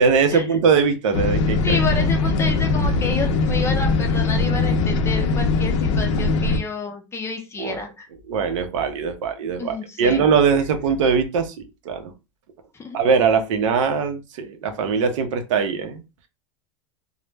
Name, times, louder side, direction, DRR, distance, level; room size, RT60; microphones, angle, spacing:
voice 1, 0.0-1.8 7.6-7.8 8.3-11.5 11.9-12.1 12.9-16.0, right 5 dB, 75° right, 7 dB, 0.5 m, -21 dB
sound 1, 1.1-6.6, left 3 dB, 70° left, 0.5 m, -20 dB
voice 2, 1.6-8.1 9.6-10.2 12.8-13.0, left 4 dB, 15° left, 4 dB, 0.5 m, -30 dB
2.0 x 2.0 x 3.2 m, 0.27 s
supercardioid pair, 120°, 16 cm